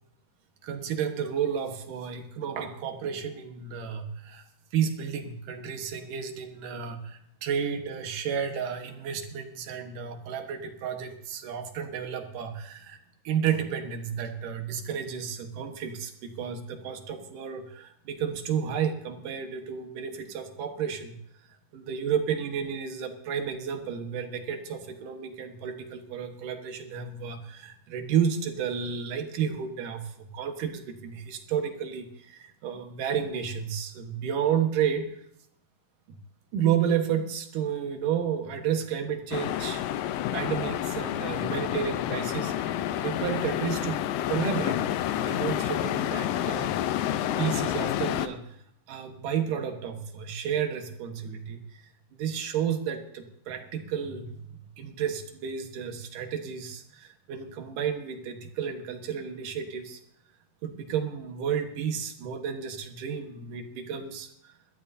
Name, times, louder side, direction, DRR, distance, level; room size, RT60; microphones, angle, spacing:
voice 1, 0.6-4.4 4.7-13.0 13.2-21.2 21.7-35.1 36.1-36.2 36.5-39.9 40.3-44.0 44.3-44.8 45.1-46.7 47.4-48.4 48.9-51.8 52.2-60.0 60.6-64.3, right 8 dB, 75° right, 6 dB, 2.8 m, -31 dB
sound 1, 39.3-48.3, left 11 dB, 85° left, 2.4 m, -29 dB
22.0 x 13.5 x 2.7 m, 0.72 s
omnidirectional pair, 3.9 m